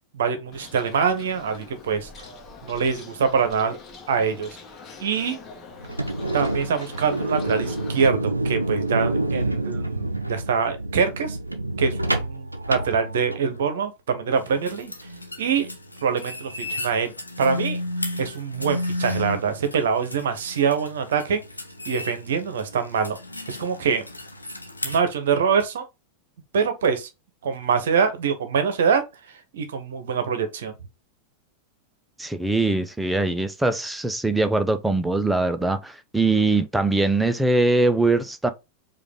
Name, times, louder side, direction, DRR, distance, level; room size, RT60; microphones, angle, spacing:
voice 1, 0.1-2.3 2.6-3.8 4.1-4.6 5.0-5.4 6.3-11.4 11.8-14.9 15.4-15.7 16.0-17.8 18.2-21.4 21.9-23.2 23.5-24.0 24.8-25.8 26.5-27.1 27.4-29.0 29.3-30.8, right 6 dB, 60° right, 0.9 m, -24 dB
Bird, 0.5-8.1, left 4 dB, 25° left, 1.1 m, -44 dB
sound 1, 5.8-13.6, right 1 dB, 85° right, 0.6 m, -27 dB
sound 2, 14.3-25.0, left 1 dB, 85° left, 0.8 m, -34 dB
voice 2, 32.2-38.5, right 2 dB, 5° right, 0.6 m, -22 dB
4.9 x 2.6 x 3.5 m
figure-of-eight pair, 90°, 0 cm